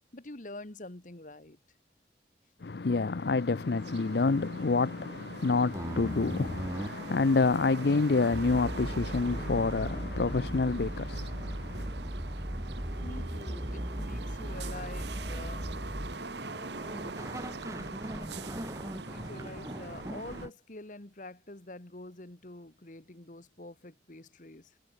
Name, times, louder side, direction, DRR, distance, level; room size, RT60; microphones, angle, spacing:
voice 1, 0.0-1.6 13.0-15.8 18.9-24.8, left 2 dB, 45° left, 1.6 m, -46 dB
voice 2, 2.6-11.9, left 3 dB, 65° left, 0.6 m, -28 dB
sound 1, 3.1-20.5, right 3 dB, 75° right, 1.7 m, -43 dB
sound 2, 5.7-20.5, equal, 15° right, 1.5 m, -38 dB
head